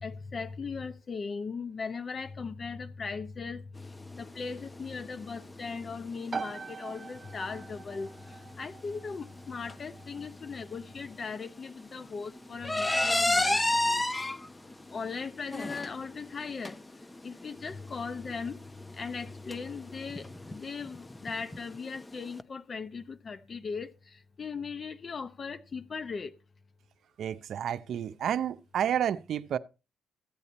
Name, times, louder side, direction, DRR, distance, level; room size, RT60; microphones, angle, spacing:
voice 1, 0.0-3.6 4.1-8.1 8.6-14.0 14.9-16.8 17.2-18.6 19.0-26.3, left 5 dB, 40° left, 0.8 m, -38 dB
sound 1, 3.8-22.4, left 1 dB, 15° left, 0.9 m, -34 dB
sound 2, 6.3-20.8, right 5 dB, 35° right, 0.8 m, -47 dB
voice 2, 27.2-29.6, right 9 dB, 65° right, 0.6 m, -30 dB
14.5 x 8.4 x 4.2 m
cardioid pair, 90°, 0 cm